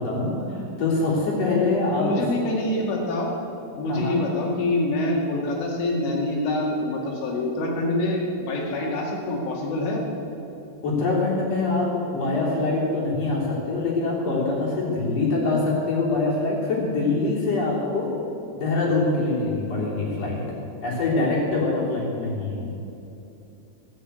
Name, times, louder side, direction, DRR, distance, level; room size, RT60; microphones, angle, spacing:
voice 1, 0.0-2.2 3.9-4.2 10.8-18.1 18.6-20.4 20.8-22.6, left 3 dB, 35° left, -4 dB, 3.9 m, -24 dB
voice 2, 2.0-3.3 3.8-10.0, left 1 dB, 65° left, -1 dB, 4.4 m, -25 dB
19.5 x 6.9 x 8.1 m, 2.8 s
omnidirectional pair, 5.6 m